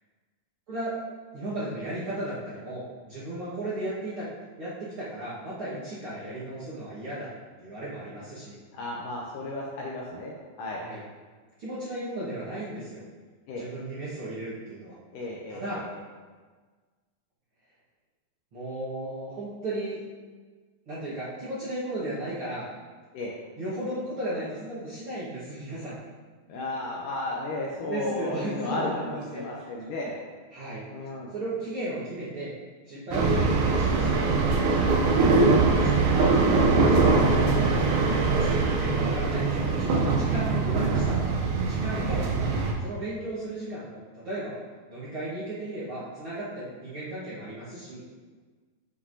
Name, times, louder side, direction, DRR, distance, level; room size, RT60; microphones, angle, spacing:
voice 1, 0.7-1.0 1.3-4.3 4.6-7.3 7.6-8.6 10.8-11.0 11.6-13.0 13.6-15.0 15.5-15.9 18.5-20.0 20.9-22.7 23.6-26.0 27.8-29.5 30.5-30.9 31.3-32.5 32.8-34.3 35.2-35.3 35.8-36.4 36.7-37.4 38.3-41.3 41.6-42.5 42.8-44.5 44.9-48.0, right 1 dB, 55° right, -11 dB, 1.5 m, -35 dB
voice 2, 8.7-10.8 13.5-13.7 15.1-15.8 23.1-23.3 26.5-30.2 30.9-31.3 41.9-42.2, left 2 dB, 80° left, -3 dB, 1.9 m, -34 dB
sound 1, 33.1-42.7, right 3 dB, 90° right, 2.7 m, -22 dB
7.5 x 5.6 x 2.7 m, 1.4 s
omnidirectional pair, 4.3 m